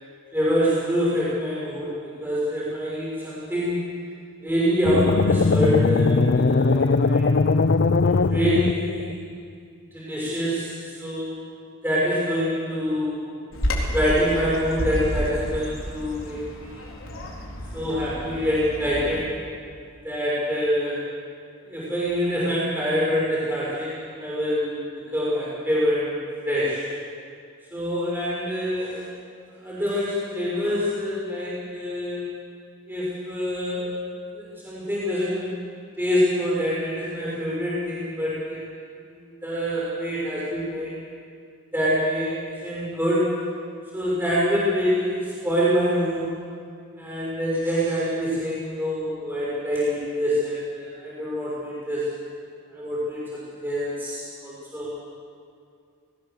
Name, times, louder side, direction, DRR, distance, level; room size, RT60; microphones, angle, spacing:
voice 1, 0.3-3.9 4.4-7.3 8.0-9.2 9.9-11.4 11.8-13.2 13.9-16.9 17.7-19.4 20.0-21.0 21.7-24.7 25.1-26.2 26.4-26.9 27.7-29.0 29.6-32.3 32.9-33.9 34.4-35.6 36.0-38.6 39.2-40.9 41.7-43.5 43.9-46.3 47.0-52.1 52.7-54.9, equal, 10° right, -8 dB, 6.0 m, -25 dB
sound 1, 4.8-9.1, left 3 dB, 55° left, 0.5 m, -20 dB
Bird vocalization bird call bird song, 13.5-19.2, equal, 75° left, 3.9 m, -30 dB
20.0 x 19.5 x 6.8 m, 2.3 s
head